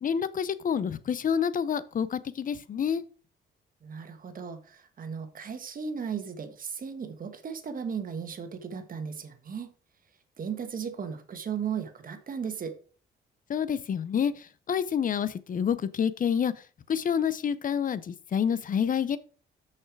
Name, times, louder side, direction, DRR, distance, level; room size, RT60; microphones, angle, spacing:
voice 1, 0.0-3.0 13.5-14.3 14.7-16.5 16.9-19.2, left 7 dB, 45° left, 16 dB, 0.6 m, -28 dB
voice 2, 3.8-9.7 10.4-12.7, right 6 dB, 45° right, 8 dB, 1.4 m, -36 dB
6.4 x 5.7 x 4.7 m, 0.40 s
cardioid pair, 90°, 20 cm